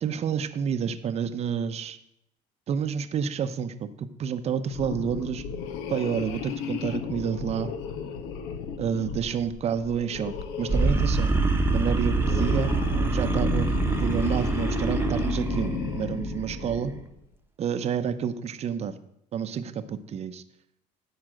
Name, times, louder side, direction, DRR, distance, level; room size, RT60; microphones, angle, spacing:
voice 1, 0.0-2.0 2.7-5.4 5.9-7.7 8.8-11.4 11.7-12.7 13.1-13.7 14.0-16.9 17.6-19.0 19.3-20.4, right 7 dB, 40° right, 10 dB, 0.7 m, -29 dB
sound 1, 4.7-17.1, left 7 dB, 85° left, 1.0 m, -35 dB
sound 2, 10.7-17.0, right 3 dB, 15° right, 0.9 m, -25 dB
9.8 x 5.0 x 7.6 m, 0.78 s
cardioid pair, 115°, 17 cm